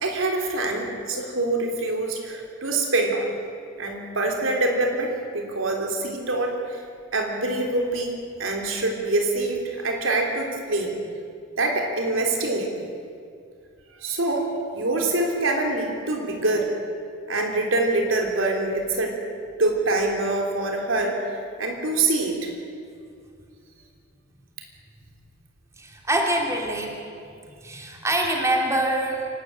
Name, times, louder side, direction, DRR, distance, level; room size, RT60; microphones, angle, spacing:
voice 1, 0.0-3.3 3.8-6.8 7.1-8.1 8.4-11.0 11.6-12.8 14.0-14.5 14.7-16.7 17.3-19.2 19.6-22.5, right 2 dB, 90° right, 2 dB, 3.5 m, -25 dB
voice 2, 25.8-27.0 27.3-29.3, right 1 dB, 15° right, 1 dB, 2.7 m, -25 dB
26.5 x 12.5 x 8.9 m, 2.3 s
head